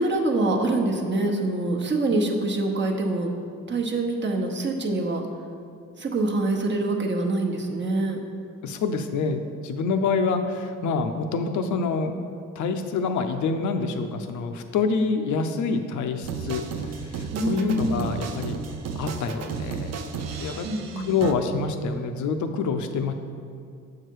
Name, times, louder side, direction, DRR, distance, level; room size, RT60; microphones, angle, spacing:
voice 1, 0.0-3.3 3.7-5.2 6.0-8.2 17.3-18.1 20.6-21.1, right 2 dB, 40° right, 1 dB, 1.0 m, -25 dB
voice 2, 8.6-12.1 12.6-18.6 19.0-20.0 20.4-20.7 21.0-23.1, left 4 dB, 70° left, 7 dB, 0.6 m, -27 dB
sound 1, 16.2-21.3, right 5 dB, 60° right, 0.6 m, -33 dB
7.1 x 4.8 x 4.7 m, 2.4 s
cardioid pair, 90°, 30 cm